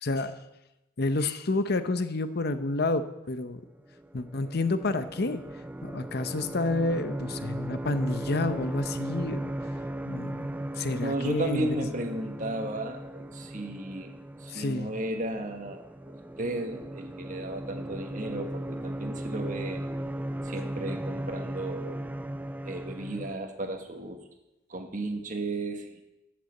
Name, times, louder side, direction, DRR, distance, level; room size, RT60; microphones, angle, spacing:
voice 1, 0.0-0.3 1.0-3.6 4.1-5.4 5.8-9.5 10.0-10.5 10.8-11.7 14.5-14.9, left 2 dB, 50° left, 10 dB, 0.8 m, -29 dB
sound 1, 3.9-23.4, right 1 dB, 10° right, 0.3 m, -37 dB
voice 2, 10.9-14.1 14.4-15.9 16.4-19.8 20.4-22.0 22.6-24.2 24.7-26.0, right 1 dB, 40° right, 4 dB, 1.5 m, -34 dB
13.5 x 6.8 x 7.8 m, 0.96 s
head